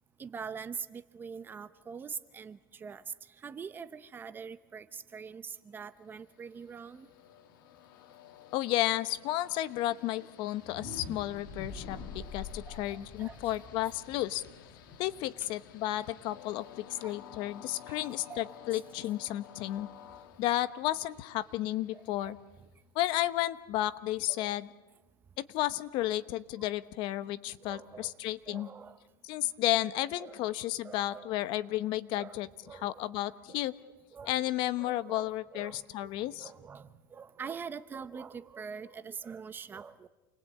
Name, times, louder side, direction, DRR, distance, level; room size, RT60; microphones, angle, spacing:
voice 1, 0.2-3.0 3.4-7.1 12.7-13.4 15.4-15.5 16.9-17.2 17.9-18.0 18.3-18.5 21.9-22.3 24.3-24.6 27.6-28.1 28.5-29.0 30.2-30.4 30.8-31.3 32.1-32.4 32.6-33.1 33.5-33.6 34.1-34.3 34.8-36.1 36.4-40.1, right 6 dB, 20° right, 13 dB, 0.9 m, -44 dB
Train, 6.0-22.7, left 11 dB, 70° left, 2.1 m, -54 dB
voice 2, 8.5-14.4 15.0-16.6 17.0-19.9 20.4-22.4 22.9-24.7 25.4-28.7 29.2-32.5 32.8-33.7 34.2-36.5, left 15 dB, 45° left, 14 dB, 1.1 m, -32 dB
sound 1, 10.6-16.4, left 4 dB, 30° left, 5.3 m, -46 dB
29.0 x 22.0 x 8.6 m, 1.1 s
supercardioid pair, 145°, 11 cm